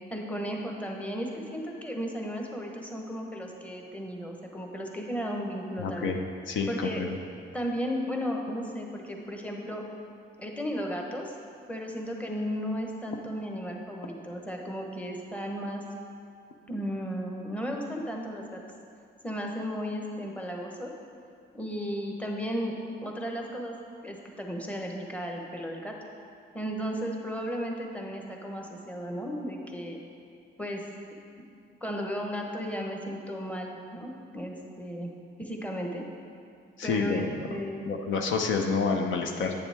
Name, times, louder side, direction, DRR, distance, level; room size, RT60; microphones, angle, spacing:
voice 1, 0.1-6.1 6.7-7.0 7.5-9.8 10.4-11.3 11.7-15.8 16.7-18.6 19.2-20.9 21.5-22.7 23.0-23.7 24.0-25.9 26.5-30.0 30.6-30.8 31.8-35.1 35.4-36.0 36.8-37.9, equal, 5° left, 0 dB, 1.1 m, -34 dB
voice 2, 5.8-6.2 6.5-7.2 36.8-37.5 37.9-39.5, left 5 dB, 75° left, 3 dB, 0.8 m, -28 dB
9.2 x 7.0 x 3.5 m, 2.4 s
cardioid pair, 90°, 20 cm